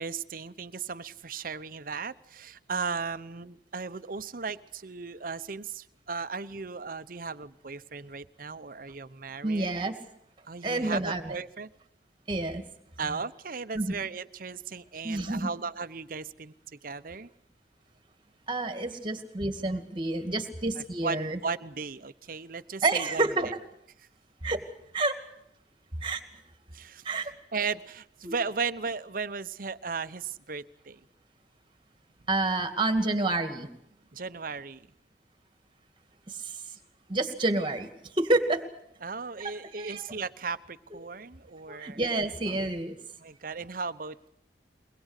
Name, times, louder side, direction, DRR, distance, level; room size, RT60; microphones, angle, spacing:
voice 1, 0.0-9.7 10.4-11.7 13.0-17.3 20.8-23.5 26.7-27.1 27.5-31.1 34.1-34.9 39.0-42.0 43.2-44.3, right 5 dB, 50° right, 13 dB, 0.9 m, -36 dB
voice 2, 9.4-9.9 10.6-11.4 12.3-12.6 13.7-14.0 15.0-15.5 18.5-21.4 22.8-23.5 24.4-24.6 24.9-25.2 26.0-26.2 27.0-27.3 28.2-28.3 32.3-33.7 37.1-37.9 38.2-38.6 39.4-40.1 41.7-42.9, right 2 dB, 30° right, 8 dB, 2.3 m, -28 dB
23.0 x 21.0 x 8.3 m, 0.73 s
head